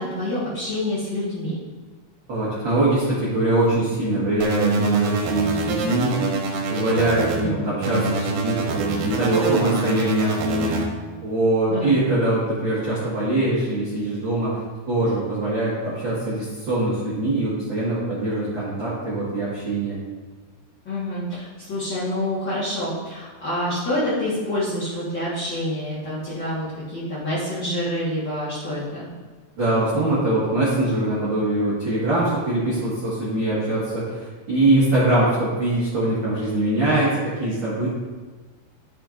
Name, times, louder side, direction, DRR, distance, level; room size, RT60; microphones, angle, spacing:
voice 1, 0.0-1.6 7.3-7.6 11.7-11.9 20.8-29.1, left 1 dB, 80° left, -11 dB, 1.0 m, -27 dB
voice 2, 2.3-6.2 6.7-10.8 11.2-14.6 14.9-20.0 29.6-37.9, right 2 dB, 55° right, -9 dB, 1.3 m, -22 dB
sound 1, 4.4-7.4 7.8-10.8, right 3 dB, 80° right, 2.9 m, -26 dB
10.0 x 6.5 x 2.6 m, 1.4 s
omnidirectional pair, 4.8 m